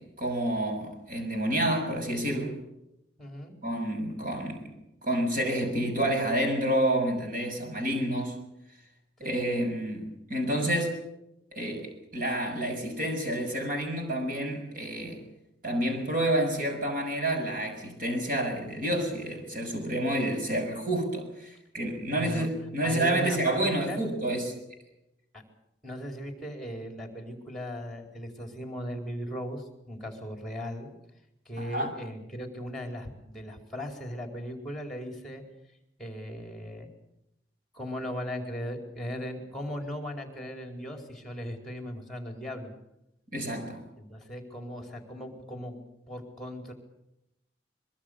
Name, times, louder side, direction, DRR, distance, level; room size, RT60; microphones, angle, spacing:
voice 1, 0.0-2.6 3.6-4.7 5.0-8.4 9.2-11.0 11.5-15.2 15.6-24.5 31.6-31.9 43.3-43.8, right 1 dB, 50° right, 4 dB, 6.8 m, -29 dB
voice 2, 3.2-3.5 9.2-9.4 22.1-22.5 22.8-24.0 25.3-25.4 25.8-30.9 31.5-35.4 36.0-36.9 37.7-42.7 44.0-45.8 46.1-46.7, equal, ahead, 4 dB, 4.6 m, -38 dB
24.0 x 22.5 x 6.9 m, 0.85 s
head